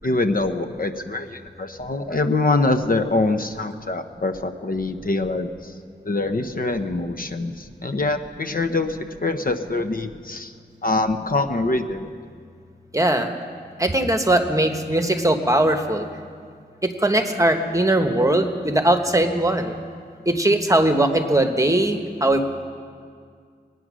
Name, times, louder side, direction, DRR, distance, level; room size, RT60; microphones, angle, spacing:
voice 1, 0.0-5.7 6.0-10.5 10.8-12.1, left 2 dB, 55° left, 8 dB, 0.8 m, -24 dB
voice 2, 12.9-13.3 13.8-16.0 16.8-19.8 20.3-22.5, right 1 dB, 20° right, 5 dB, 1.2 m, -20 dB
22.0 x 9.4 x 6.2 m, 2.1 s
wide cardioid pair, 65°, 18 cm